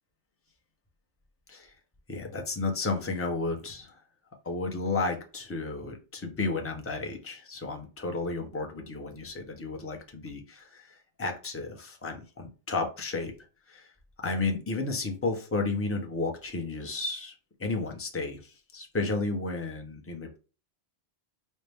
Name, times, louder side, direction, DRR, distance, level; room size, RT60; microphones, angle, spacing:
voice 1, 2.1-4.0 4.4-13.3 13.7-13.9 14.2-17.3 17.6-20.4, left 3 dB, 15° left, 3 dB, 0.6 m, -32 dB
5.3 x 2.1 x 3.4 m, 0.34 s
omnidirectional pair, 1.1 m